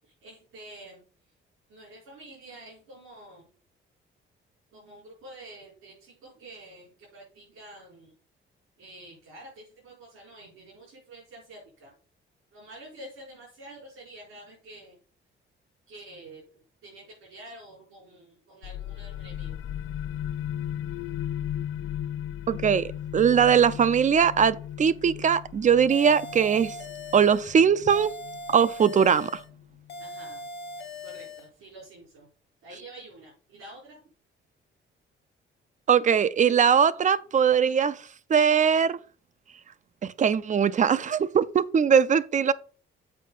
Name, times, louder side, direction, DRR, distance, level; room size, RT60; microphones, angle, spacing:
voice 1, 0.0-1.0 1.7-3.5 4.7-8.1 8.8-11.9 12.5-15.0 15.9-16.4 16.8-19.6 30.0-30.5 31.0-32.3 32.6-34.0, right 1 dB, 90° right, 4.6 m, -48 dB
sound 1, 18.6-30.0, left 10 dB, 75° left, 0.5 m, -36 dB
voice 2, 22.5-26.8 27.1-28.1 28.5-29.4 35.9-38.0 38.3-39.0 40.0-42.5, right 7 dB, 40° right, 0.4 m, -21 dB
sound 2, 25.9-27.5 27.9-29.5 29.9-31.5, left 2 dB, 60° left, 1.4 m, -40 dB
7.5 x 4.7 x 5.4 m
cardioid pair, 115°, 20 cm